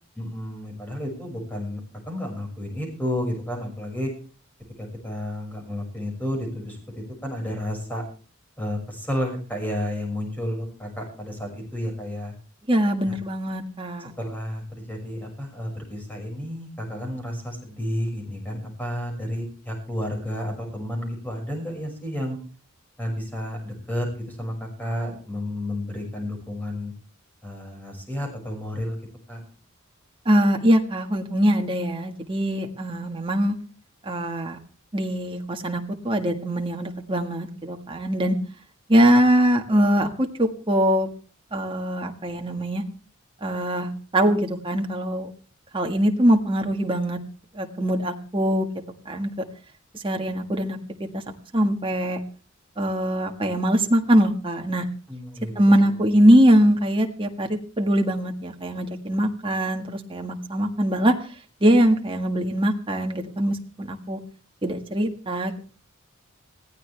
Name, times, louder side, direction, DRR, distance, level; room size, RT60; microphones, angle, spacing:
voice 1, 0.2-1.8 2.1-4.1 4.8-8.0 8.6-12.3 13.1-13.2 14.2-22.4 23.0-26.9 27.4-29.0 29.3-29.4 55.1-55.9, left 1 dB, 10° left, 1 dB, 6.1 m, -31 dB
voice 2, 12.7-14.1 30.2-33.6 34.0-34.6 34.9-38.4 38.9-41.1 41.5-42.8 43.4-45.3 45.7-47.2 47.5-48.7 49.0-49.3 50.0-50.8 51.1-51.2 51.5-52.2 52.8-54.9 55.5-61.1 61.6-64.2 64.6-65.5, equal, 25° right, 3 dB, 1.7 m, -22 dB
20.5 x 15.5 x 3.4 m, 0.39 s
head